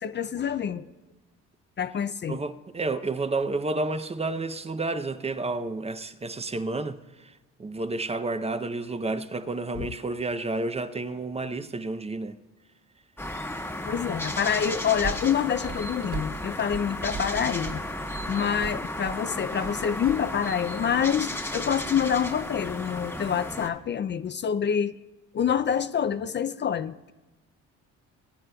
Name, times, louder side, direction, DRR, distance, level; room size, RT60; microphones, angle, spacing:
voice 1, 0.0-0.8 1.8-2.4 9.8-9.9 13.9-18.0 18.3-24.9 25.3-27.1, left 8 dB, 40° left, 0.4 m, -27 dB
voice 2, 2.3-12.4, right 3 dB, 20° right, 0.6 m, -31 dB
sound 1, 13.2-23.7, left 1 dB, 5° left, 1.2 m, -34 dB
sound 2, 15.0-20.2, right 5 dB, 60° right, 3.2 m, -38 dB
22.5 x 9.4 x 2.3 m
cardioid pair, 90°, 30 cm